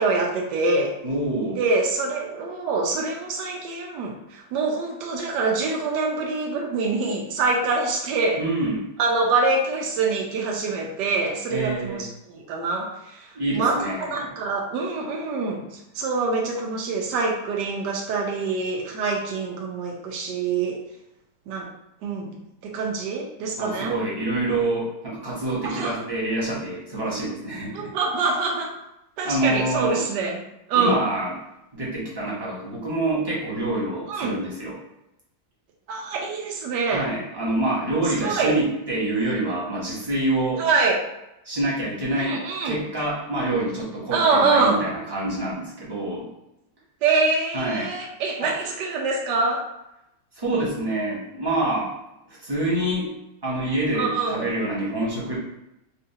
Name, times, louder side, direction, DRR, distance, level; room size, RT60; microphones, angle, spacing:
voice 1, 0.0-0.9 1.6-8.4 9.0-13.3 13.5-20.7 21.5-21.7 22.0-24.0 25.6-26.0 27.7-28.7 29.2-30.4 30.7-31.0 34.1-34.3 35.9-37.1 38.2-38.5 40.6-41.0 42.2-42.8 44.1-44.8 47.0-49.6 54.0-54.5, right 3 dB, 85° right, 0 dB, 1.2 m, -25 dB
voice 2, 1.0-1.6 8.4-8.8 11.5-12.1 13.3-14.3 23.6-27.9 29.2-30.0 30.7-31.3 31.7-34.7 36.9-40.6 41.4-42.4 42.6-46.3 47.5-47.9 48.4-48.5 50.4-51.9 52.3-53.1 53.4-55.4, right 1 dB, 20° right, -7 dB, 0.7 m, -26 dB
4.4 x 2.4 x 2.7 m, 0.88 s
omnidirectional pair, 1.8 m